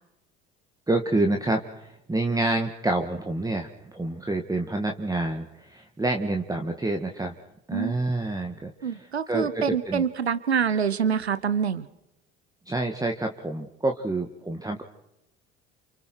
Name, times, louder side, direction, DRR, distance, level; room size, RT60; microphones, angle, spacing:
voice 1, 0.9-7.3 7.7-10.0 12.7-14.8, right 2 dB, 10° right, 4 dB, 2.0 m, -28 dB
voice 2, 8.8-11.9, right 7 dB, 90° right, 16 dB, 0.9 m, -26 dB
29.5 x 28.5 x 4.7 m, 0.89 s
figure-of-eight pair, 65°, 32 cm